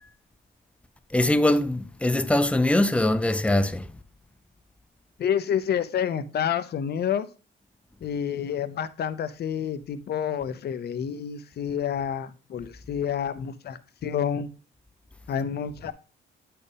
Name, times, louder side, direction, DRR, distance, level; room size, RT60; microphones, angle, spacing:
voice 1, 1.1-3.9, left 1 dB, 5° left, 0.5 m, -22 dB
voice 2, 5.2-7.3 8.0-14.5 15.3-15.9, left 8 dB, 55° left, 0.6 m, -29 dB
8.5 x 4.4 x 3.4 m
cardioid pair, 90°, 20 cm